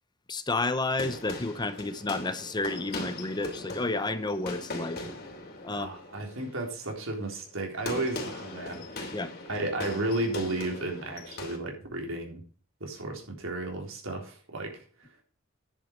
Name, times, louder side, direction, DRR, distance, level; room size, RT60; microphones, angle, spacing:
voice 1, 0.3-5.0 5.6-5.9 9.1-9.3, left 2 dB, 20° left, 0.7 m, -31 dB
sound 1, 0.7-11.6, left 2 dB, 50° left, 3.0 m, -40 dB
voice 2, 5.7-9.1 9.5-12.5 12.8-15.1, right 2 dB, 80° right, 3.6 m, -33 dB
10.0 x 7.6 x 5.2 m
head